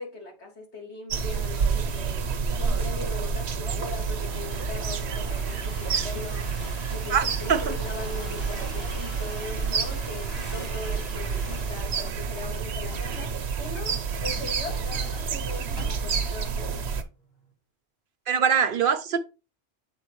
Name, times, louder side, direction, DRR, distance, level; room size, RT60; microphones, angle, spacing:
voice 1, 0.0-2.2 2.6-6.5 6.9-16.8, left 3 dB, 85° left, 2.2 m, -40 dB
sound 1, 1.1-17.0, right 5 dB, 80° right, 1.0 m, -29 dB
sound 2, 1.9-16.4 17.0-17.5, left 1 dB, 65° left, 2.0 m, -45 dB
voice 2, 18.3-19.2, right 7 dB, 60° right, 0.7 m, -22 dB
7.5 x 4.2 x 3.0 m
omnidirectional pair, 1.1 m